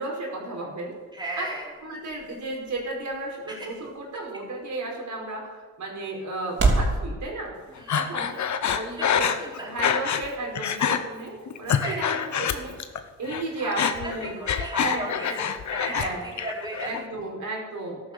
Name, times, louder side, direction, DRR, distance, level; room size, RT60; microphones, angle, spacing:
voice 1, 0.0-1.0 1.4-1.5 1.8-7.5 7.9-8.4 8.7-14.4 14.8-15.4 15.9-16.3 16.8-18.0, right 2 dB, 70° right, -2 dB, 5.2 m, -34 dB
sound 1, 0.7-7.0, right 3 dB, 50° right, 3.3 m, -31 dB
voice 2, 1.1-1.7 3.5-3.7 7.7-8.5 9.0-9.7 11.8-12.0 13.6-15.4 15.7-17.0, right 1 dB, 15° right, -4 dB, 4.1 m, -36 dB
Breathing, 7.9-10.3 10.6-11.0 11.5-13.0 13.3-16.1 16.4-17.0, left 8 dB, 65° left, 1.2 m, -26 dB
14.0 x 11.5 x 6.9 m, 1.4 s
cardioid pair, 110°, 31 cm